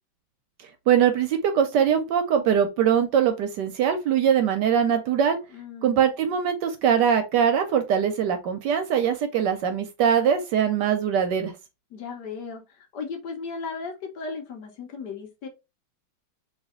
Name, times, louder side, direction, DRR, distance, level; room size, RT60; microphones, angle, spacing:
voice 1, 0.9-5.4 5.8-11.5, right 8 dB, 70° right, 1.1 m, -22 dB
voice 2, 5.5-6.0 11.9-15.5, left 4 dB, 65° left, 1.3 m, -36 dB
3.2 x 2.7 x 3.6 m
omnidirectional pair, 2.1 m